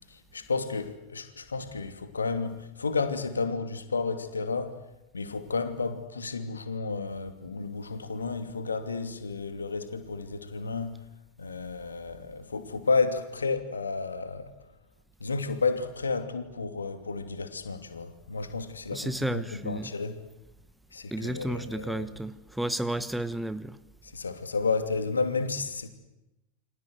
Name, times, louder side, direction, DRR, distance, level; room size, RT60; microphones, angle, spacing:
voice 1, 0.1-4.8 5.1-11.0 11.4-14.5 15.2-20.1 20.9-22.1 24.0-25.9, left 4 dB, 75° left, 2.8 m, -31 dB
voice 2, 18.9-19.9 21.1-23.8, right 1 dB, 5° right, 1.3 m, -32 dB
29.0 x 25.0 x 8.1 m
figure-of-eight pair, 90°, 0 cm